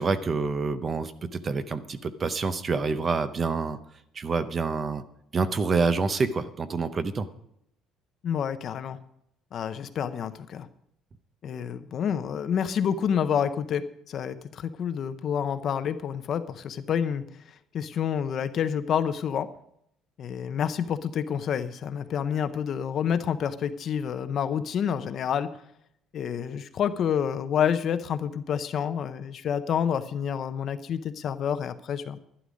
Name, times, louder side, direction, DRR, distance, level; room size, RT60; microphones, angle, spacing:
voice 1, 0.0-3.8 4.1-5.0 5.3-7.3, right 4 dB, 25° right, 12 dB, 0.7 m, -27 dB
voice 2, 8.2-9.0 9.5-10.7 11.4-17.2 17.7-19.5 20.2-25.5 26.1-32.2, left 8 dB, 40° left, 11 dB, 0.7 m, -28 dB
11.5 x 11.0 x 5.1 m, 0.74 s
cardioid pair, 165°, 0 cm